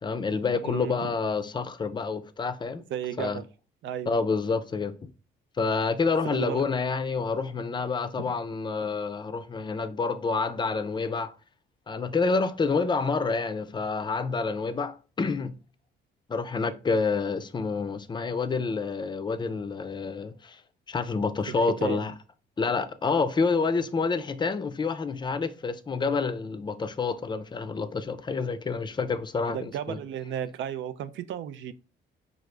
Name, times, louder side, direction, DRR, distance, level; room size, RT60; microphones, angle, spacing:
voice 1, 0.0-2.8 3.2-3.4 4.1-5.1 5.6-11.3 11.9-15.6 16.3-20.6 20.9-22.1 22.6-30.0, left 4 dB, 25° left, 0.4 m, -28 dB
voice 2, 0.6-1.1 2.9-3.5 3.8-4.1 6.2-6.6 21.5-22.0 29.5-31.7, right 9 dB, 75° right, 0.4 m, -34 dB
4.8 x 2.5 x 3.2 m
cardioid pair, 90°, 20 cm